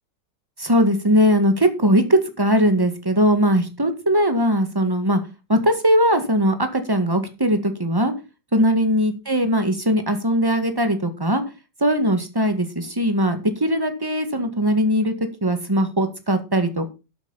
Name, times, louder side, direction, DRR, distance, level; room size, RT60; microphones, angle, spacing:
voice 1, 0.6-5.2 5.5-8.1 8.5-11.4 11.8-15.1 15.4-16.9, equal, 10° right, 8 dB, 1.7 m, -20 dB
11.5 x 8.5 x 4.1 m, 0.29 s
omnidirectional pair, 2.0 m